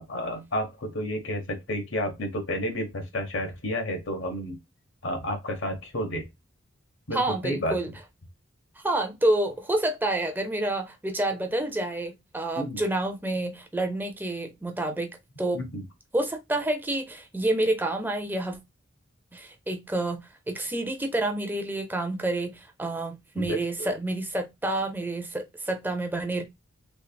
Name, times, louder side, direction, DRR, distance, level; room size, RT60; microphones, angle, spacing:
voice 1, 0.0-4.6 5.0-6.3 7.1-7.8 12.6-12.8 15.5-15.9 23.4-23.9, equal, 70° left, 1.1 m, -31 dB
voice 2, 7.1-7.9 8.8-15.6 16.1-18.6 19.3-26.4, right 1 dB, 10° right, 0.5 m, -28 dB
3.4 x 3.3 x 2.2 m
head